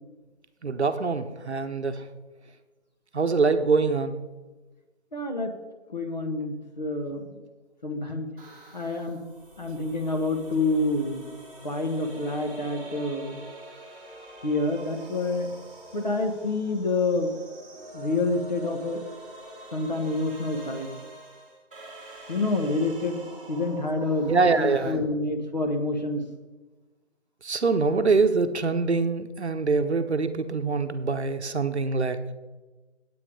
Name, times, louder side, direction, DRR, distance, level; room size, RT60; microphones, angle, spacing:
voice 1, 0.6-2.0 3.1-4.2 24.3-25.1 27.4-32.2, right 4 dB, 65° right, 9 dB, 0.9 m, -24 dB
voice 2, 5.1-5.5 5.9-7.4 7.8-8.3 8.7-9.2 9.6-11.3 11.6-13.4 14.4-15.5 15.9-17.3 17.9-19.0 19.7-20.9 22.3-23.2 23.5-26.2, left 2 dB, 35° left, 5 dB, 1.0 m, -28 dB
sound 1, 8.4-24.9, right 1 dB, 10° right, 1.4 m, -45 dB
8.7 x 8.3 x 5.0 m, 1.2 s
figure-of-eight pair, 175°, 36 cm